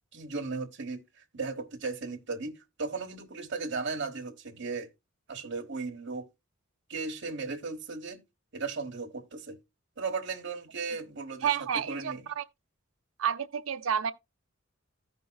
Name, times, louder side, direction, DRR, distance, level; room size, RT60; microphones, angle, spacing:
voice 1, 0.1-1.0 1.3-4.9 5.3-6.3 6.9-8.2 8.5-9.6 10.0-11.5 11.9-12.2, right 4 dB, 60° right, 1.2 m, -36 dB
voice 2, 11.4-12.4 13.2-14.1, right 8 dB, 80° right, 0.6 m, -30 dB
15.5 x 5.3 x 2.2 m
head